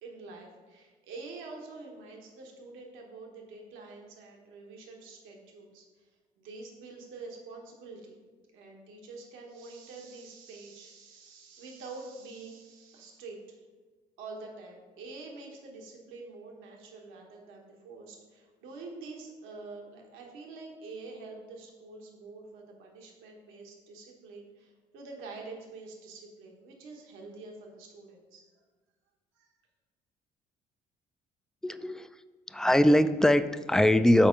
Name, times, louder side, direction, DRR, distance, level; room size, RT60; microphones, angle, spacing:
voice 1, 0.0-6.1 6.4-8.2 8.5-13.4 14.2-28.5 29.3-29.5, right 3 dB, 80° right, 1 dB, 1.1 m, -46 dB
voice 2, 31.6-32.1 32.5-34.3, left 1 dB, 5° left, 12 dB, 0.3 m, -22 dB
6.8 x 4.2 x 5.1 m, 1.4 s
supercardioid pair, 65°, 20 cm